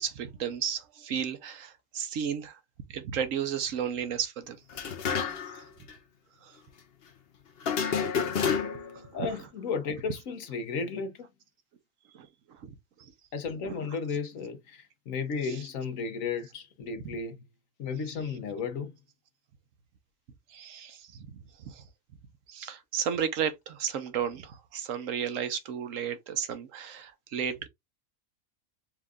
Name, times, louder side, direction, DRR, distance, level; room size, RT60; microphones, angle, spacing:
voice 1, 0.0-2.6 2.9-4.6 5.5-5.6 7.9-8.0 8.4-9.3 12.1-12.3 12.6-12.7 20.5-21.3 21.6-21.8 22.5-27.6, right 8 dB, 70° right, 1.1 m, -33 dB
sound 1, 4.7-5.6 5.9-6.0 7.6-9.0, left 6 dB, 55° left, 0.8 m, -29 dB
voice 2, 9.1-11.3 13.3-17.4 17.8-19.0, left 5 dB, 70° left, 1.2 m, -34 dB
4.6 x 2.4 x 3.5 m
omnidirectional pair, 1.5 m